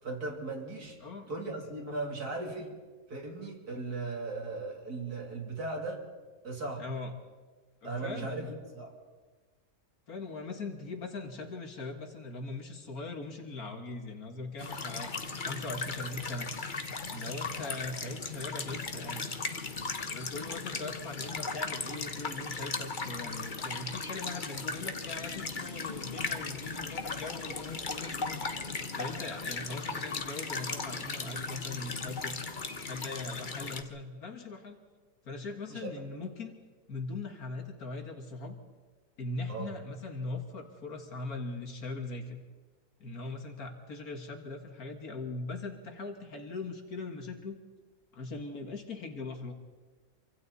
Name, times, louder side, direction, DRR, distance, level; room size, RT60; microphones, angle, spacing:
voice 1, 0.0-1.0 1.3-2.7 3.1-6.0 6.4-6.8 7.8-8.9 35.7-35.9 39.5-39.7, right 3 dB, 80° right, 0 dB, 3.8 m, -37 dB
voice 2, 6.8-7.1 7.8-8.5 10.1-16.5 17.1-19.3 20.0-28.4 29.0-32.4 32.8-34.8 35.2-36.5 36.9-38.6 39.2-42.4 43.0-47.6 48.1-49.5, left 3 dB, 70° left, 4 dB, 2.3 m, -40 dB
sound 1, 14.6-33.8, left 4 dB, 35° left, 1.3 m, -37 dB
26.5 x 25.0 x 4.2 m, 1.3 s
omnidirectional pair, 1.6 m